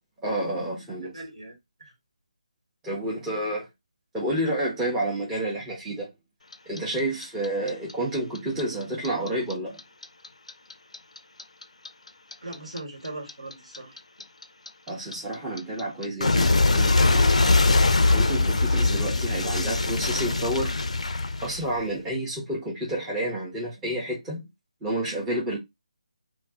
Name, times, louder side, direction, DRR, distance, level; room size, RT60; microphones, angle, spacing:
voice 1, 0.2-1.1 2.8-3.7 4.1-6.1 6.7-9.8 14.9-17.3 18.1-20.8 21.4-24.5 24.8-25.6, right 1 dB, 5° right, 0.6 m, -30 dB
voice 2, 1.0-1.5 1.8-1.9 12.4-14.0 18.5-18.6, right 2 dB, 65° right, 1.2 m, -39 dB
Clock, 6.5-9.5 9.8-12.8 13.0-21.9, left 3 dB, 65° left, 0.4 m, -22 dB
2.4 x 2.1 x 3.4 m
figure-of-eight pair, 150°, 4 cm